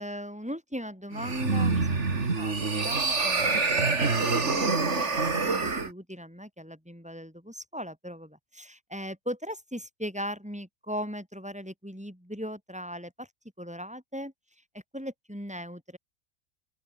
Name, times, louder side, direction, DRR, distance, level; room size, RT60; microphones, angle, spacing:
voice 1, 0.0-13.3 13.6-14.3 14.9-16.0, equal, 5° right, 7.7 m, -39 dB
sound 1, 1.1-5.9, right 4 dB, 45° right, 2.9 m, -26 dB
open air
omnidirectional pair, 1.6 m